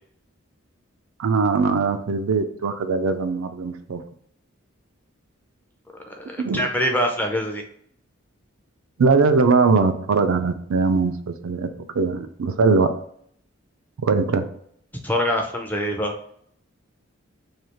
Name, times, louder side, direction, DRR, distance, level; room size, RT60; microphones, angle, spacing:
voice 1, 1.2-4.0 6.4-6.6 9.0-11.7 12.0-12.9 14.0-14.5, right 4 dB, 80° right, 8 dB, 0.4 m, -20 dB
voice 2, 6.1-7.6 15.0-16.1, equal, 10° left, 2 dB, 0.4 m, -24 dB
3.2 x 2.3 x 4.3 m, 0.65 s
head